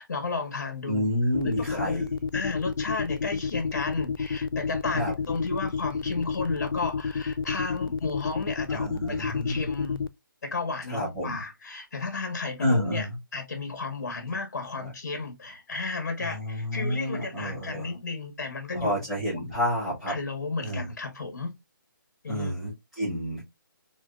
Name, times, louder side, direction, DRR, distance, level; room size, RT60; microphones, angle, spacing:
voice 1, 0.0-1.1 1.4-2.1 2.3-10.0 10.4-13.1 13.3-19.1 19.3-19.5 20.1-21.5 22.2-22.7, left 3 dB, 50° left, 1.2 m, -33 dB
voice 2, 0.9-2.2 4.9-5.1 8.7-9.7 10.9-11.4 12.6-13.2 14.8-14.9 16.2-18.0 18.7-20.1 20.6-20.9 22.3-23.4, equal, ahead, 0.6 m, -29 dB
sound 1, 1.3-10.1, left 5 dB, 85° left, 0.4 m, -29 dB
4.4 x 2.2 x 2.3 m
hypercardioid pair, 175°, 11 cm